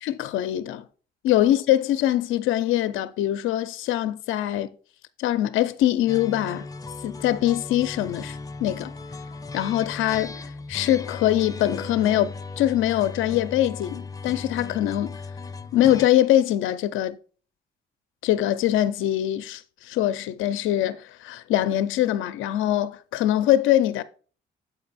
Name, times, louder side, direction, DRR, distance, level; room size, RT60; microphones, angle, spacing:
voice 1, 0.0-0.8 1.2-4.7 5.2-6.7 7.0-8.9 9.5-15.2 15.7-17.2 18.2-24.0, left 13 dB, 85° left, 0.4 m, -23 dB
sound 1, 6.1-16.1, left 3 dB, 20° left, 0.5 m, -37 dB
6.7 x 4.9 x 4.0 m
cardioid pair, 90°, 20 cm